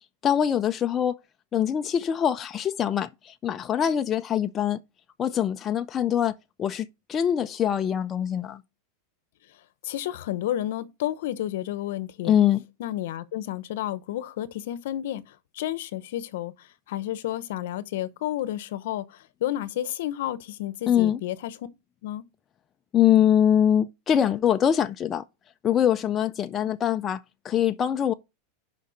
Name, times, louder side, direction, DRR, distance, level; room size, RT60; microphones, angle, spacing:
voice 1, 0.2-1.2 1.5-4.8 5.2-8.6 12.2-12.6 20.9-21.2 22.9-25.2 25.6-28.1, left 9 dB, 20° left, 0.3 m, -23 dB
voice 2, 9.8-12.4 12.8-15.2 15.5-21.5 22.0-22.2, left 13 dB, 70° left, 0.7 m, -31 dB
6.6 x 5.2 x 4.9 m
supercardioid pair, 165°, 0 cm